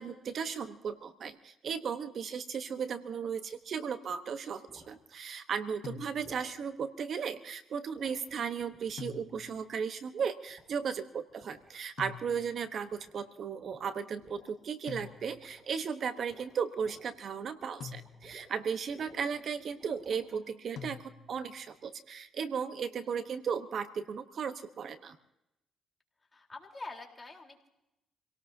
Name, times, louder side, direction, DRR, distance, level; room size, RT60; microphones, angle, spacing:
voice 1, 0.0-25.2, right 6 dB, 60° right, 10 dB, 1.1 m, -36 dB
sound 1, 3.5-3.7 4.7-5.0 6.2-6.6 7.9-9.8 10.5-11.0 11.3-11.7 12.0-12.5 12.8-13.3 13.6-14.5 14.9-15.8 16.2-18.6 18.9-20.4, right 1 dB, 35° right, 7.7 m, -58 dB
sound 2, 5.8-6.6 9.0-9.7 12.0-12.8 14.9-15.6 17.8-18.6 20.8-21.5, left 6 dB, 65° left, 1.1 m, -46 dB
voice 2, 26.3-27.7, left 3 dB, 20° left, 1 dB, 3.9 m, -46 dB
28.5 x 18.0 x 2.8 m, 0.88 s
cardioid pair, 90°, 0 cm